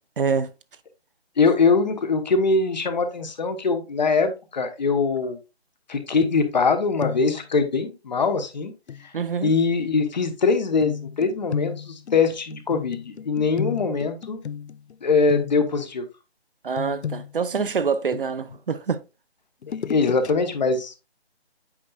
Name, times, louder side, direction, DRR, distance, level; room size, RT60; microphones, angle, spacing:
voice 1, 0.2-0.5 9.1-9.5 16.6-19.0, right 5 dB, 55° right, 0.7 m, -25 dB
voice 2, 1.4-5.4 5.9-8.7 9.0-9.1 9.4-14.4 15.0-16.1 19.7-20.9, left 4 dB, 45° left, 1.2 m, -22 dB
sound 1, 6.2-6.7 7.0-7.5 8.9-9.0 10.8-14.9 15.3-15.8 16.8-18.6 19.6-20.3 20.7-20.8, left 8 dB, 85° left, 0.5 m, -33 dB
8.6 x 5.4 x 2.4 m
figure-of-eight pair, 160°, 32 cm